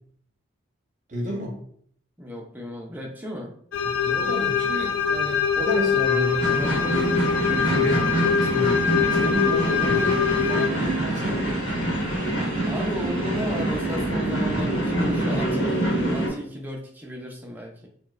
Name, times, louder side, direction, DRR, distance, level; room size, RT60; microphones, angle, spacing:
voice 1, 1.1-1.6 3.8-7.2 7.5-8.1 8.4-8.8 9.1-11.6, equal, 40° right, 0 dB, 0.8 m, -31 dB
voice 2, 2.2-3.5 12.6-17.9, equal, 10° right, 0 dB, 0.4 m, -35 dB
sound 1, 3.7-10.7, left 7 dB, 80° left, 0.4 m, -23 dB
Bowed string instrument, 6.0-13.9, right 3 dB, 90° right, 0.4 m, -41 dB
sound 2, 6.4-16.3, right 1 dB, 60° left, 1.1 m, -25 dB
4.3 x 2.1 x 2.3 m, 0.62 s
head